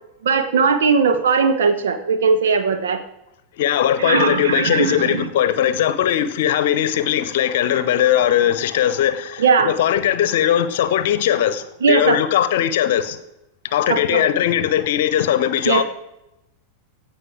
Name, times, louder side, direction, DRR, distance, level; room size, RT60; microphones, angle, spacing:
voice 1, 0.2-3.0 4.0-5.2 9.4-9.7 11.8-12.2 13.9-14.2 15.6-15.8, right 5 dB, 60° right, 1.2 m, -18 dB
voice 2, 3.6-13.2 13.6-15.8, left 10 dB, 55° left, 0.9 m, -19 dB
16.0 x 5.4 x 5.9 m
figure-of-eight pair, 90°, 0 cm